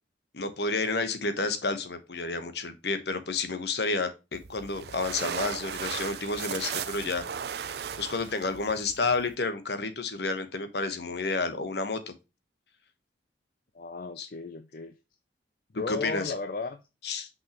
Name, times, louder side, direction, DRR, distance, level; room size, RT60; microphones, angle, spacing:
voice 1, 0.3-7.2 8.0-12.1 14.2-14.3 15.9-16.3 17.0-17.3, left 3 dB, 70° left, 1.1 m, -30 dB
sound 1, 4.3-9.3, right 7 dB, 60° right, 0.4 m, -37 dB
voice 2, 13.7-14.9 15.7-16.8, left 4 dB, 50° left, 0.5 m, -35 dB
5.8 x 5.4 x 3.0 m
head